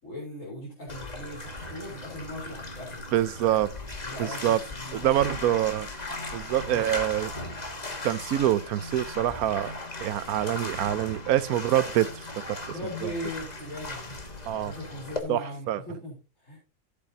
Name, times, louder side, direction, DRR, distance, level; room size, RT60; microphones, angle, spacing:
voice 1, 0.0-3.0 4.0-5.6 6.5-6.8 12.7-16.6, left 1 dB, 60° left, 4.4 m, -39 dB
Bathtub (filling or washing), 0.9-15.2, left 2 dB, 30° left, 1.6 m, -38 dB
voice 2, 3.1-3.7 4.2-4.6 4.9-5.9 6.3-7.3 8.0-12.1 12.5-12.6 14.5-14.7 15.3-15.8, right 12 dB, 90° right, 1.1 m, -25 dB
14.5 x 8.4 x 2.8 m
omnidirectional pair, 1.5 m